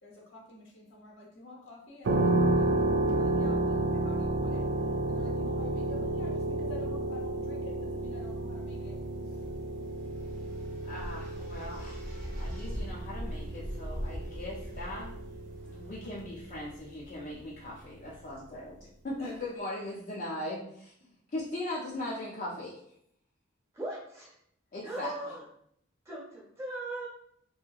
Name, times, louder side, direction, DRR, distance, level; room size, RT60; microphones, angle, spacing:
voice 1, 0.0-2.7 3.0-9.4 19.2-19.4, left 2 dB, 80° left, -1 dB, 0.8 m, -49 dB
sound 1, 2.0-16.7, right 2 dB, 60° right, 0.4 m, -31 dB
sound 2, 7.6-15.9, equal, 40° right, 0.8 m, -42 dB
voice 2, 10.8-12.1 12.4-15.1 15.6-20.9 21.3-22.8 24.7-25.1, left 1 dB, 45° left, -5 dB, 0.4 m, -39 dB
voice 3, 23.7-24.3 24.8-25.4 26.0-27.1, right 2 dB, 15° right, -5 dB, 0.9 m, -39 dB
2.8 x 2.7 x 2.3 m, 0.70 s
head